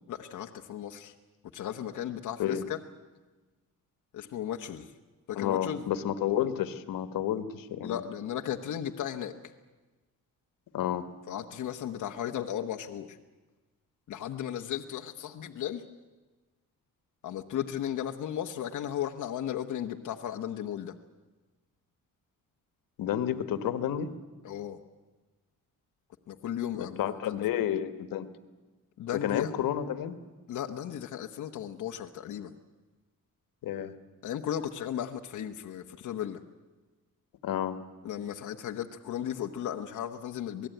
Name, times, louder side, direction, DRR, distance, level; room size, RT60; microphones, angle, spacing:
voice 1, 0.1-1.1 1.5-2.8 4.1-4.9 5.3-5.8 7.8-9.3 11.3-13.2 14.1-15.8 17.2-20.9 24.4-24.8 26.3-27.4 29.0-29.5 30.5-32.5 34.2-36.4 38.0-40.7, left 10 dB, 65° left, 3 dB, 1.1 m, -35 dB
voice 2, 5.4-8.0 10.7-11.1 23.0-24.1 26.7-28.3 29.2-30.2 33.6-33.9 37.4-37.8, left 10 dB, 90° left, 10 dB, 1.5 m, -30 dB
27.0 x 18.5 x 9.2 m, 1.3 s
wide cardioid pair, 170°, 33 cm